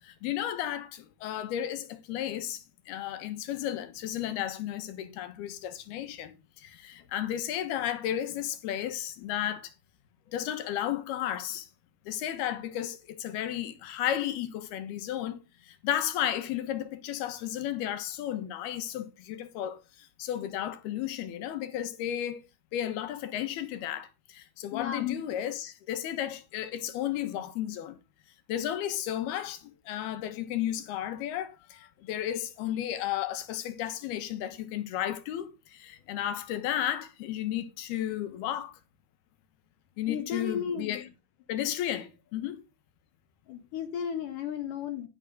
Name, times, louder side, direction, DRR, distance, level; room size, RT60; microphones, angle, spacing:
voice 1, 0.0-9.7 10.3-11.7 12.1-22.4 22.7-28.0 28.5-38.8 40.0-41.0 41.5-42.6, left 11 dB, 80° left, 3.3 m, -33 dB
voice 2, 24.7-25.2 40.0-41.1 43.5-45.1, left 8 dB, 65° left, 2.9 m, -34 dB
11.5 x 11.5 x 3.9 m
omnidirectional pair, 4.5 m